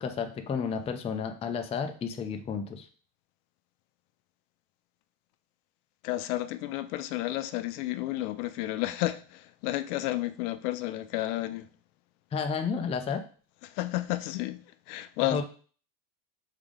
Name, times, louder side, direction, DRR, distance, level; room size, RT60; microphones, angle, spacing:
voice 1, 0.0-2.9 12.3-13.2 15.3-15.4, left 6 dB, 15° left, 0.4 m, -31 dB
voice 2, 6.0-11.7 13.6-15.4, left 16 dB, 80° left, 0.6 m, -32 dB
3.7 x 3.4 x 3.6 m
supercardioid pair, 110°, 44 cm